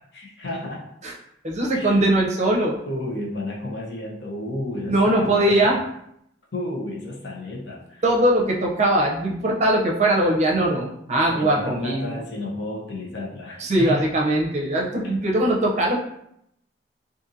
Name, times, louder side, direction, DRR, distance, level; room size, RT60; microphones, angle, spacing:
voice 1, 0.1-0.8 1.7-2.0 2.9-5.8 6.5-8.0 11.1-14.1 15.0-15.4, left 1 dB, 90° left, -2 dB, 0.7 m, -32 dB
voice 2, 1.4-2.8 4.9-5.8 8.0-12.2 13.6-16.0, right 1 dB, 40° right, -2 dB, 0.5 m, -21 dB
2.6 x 2.6 x 2.6 m, 0.76 s
head